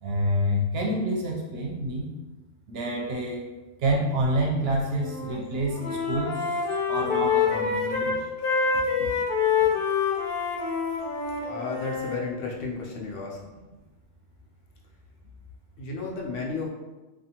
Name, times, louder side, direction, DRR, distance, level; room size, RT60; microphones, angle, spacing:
voice 1, 0.0-2.1 2.7-3.4 3.8-6.6 6.9-8.1, right 1 dB, 65° right, -1 dB, 0.7 m, -27 dB
Wind instrument woodwind instrument, 5.0-5.4 5.7-12.2, left 6 dB, 60° left, 0.7 m, -26 dB
voice 2, 11.4-13.4 15.8-16.7, left 3 dB, 90° left, -1 dB, 1.0 m, -33 dB
2.4 x 2.4 x 2.8 m, 1.2 s
omnidirectional pair, 1.2 m